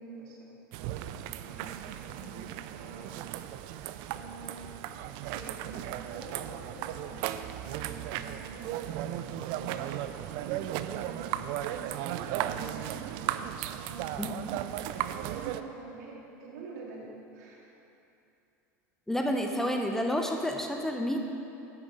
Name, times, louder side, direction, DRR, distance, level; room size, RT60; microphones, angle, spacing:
voice 1, 0.0-3.2 4.1-4.8 5.3-13.1 13.8-14.5 15.2-17.7, right 3 dB, 75° right, -3 dB, 2.2 m, -47 dB
sound 1, 0.7-15.6, right 12 dB, 60° right, 0.4 m, -36 dB
voice 2, 19.1-21.2, equal, 5° left, 2 dB, 0.8 m, -29 dB
8.7 x 8.1 x 5.3 m, 2.8 s
hypercardioid pair, 95°, 9 cm